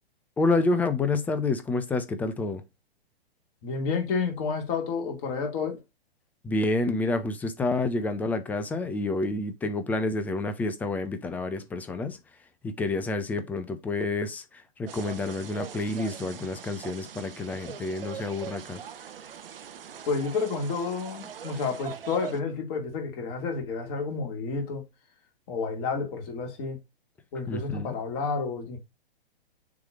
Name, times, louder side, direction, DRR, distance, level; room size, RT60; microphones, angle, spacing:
voice 1, 0.4-2.6 6.4-12.2 12.6-18.8 27.5-27.9, left 2 dB, 5° left, 0.4 m, -29 dB
voice 2, 3.6-5.8 20.1-24.8 25.5-26.8 27.3-28.8, left 4 dB, 40° left, 2.4 m, -30 dB
sound 1, 14.9-22.4, right 8 dB, 65° right, 1.0 m, -42 dB
6.8 x 3.2 x 4.9 m
figure-of-eight pair, 120°, 30 cm